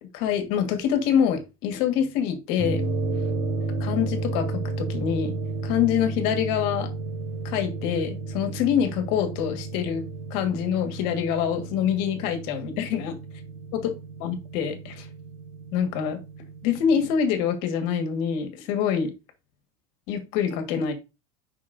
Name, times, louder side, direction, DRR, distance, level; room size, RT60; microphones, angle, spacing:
voice 1, 0.1-2.8 3.8-5.3 5.6-6.9 7.4-10.0 10.3-13.1 14.2-15.1 15.7-16.2 16.6-19.1 20.1-20.9, left 8 dB, 60° left, 7 dB, 1.7 m, -25 dB
sound 1, 2.6-17.1, right 3 dB, 80° right, 3.8 m, -32 dB
9.5 x 5.8 x 2.6 m, 0.27 s
supercardioid pair, 155°, 18 cm